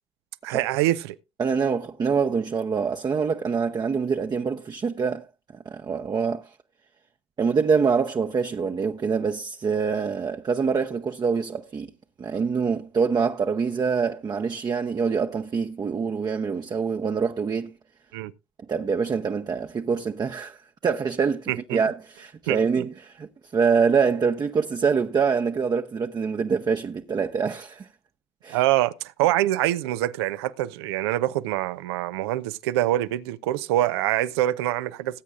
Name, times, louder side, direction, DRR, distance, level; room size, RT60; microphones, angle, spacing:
voice 1, 0.4-1.2 18.1-18.3 21.5-21.8 22.5-22.9 28.5-35.2, right 14 dB, 80° right, 0.6 m, -25 dB
voice 2, 1.4-5.3 5.7-6.6 7.4-11.9 12.2-17.7 18.7-23.3 23.5-27.9 28.4-28.6, right 5 dB, 30° right, 0.8 m, -25 dB
19.5 x 8.3 x 2.5 m
hypercardioid pair, 65°, 13 cm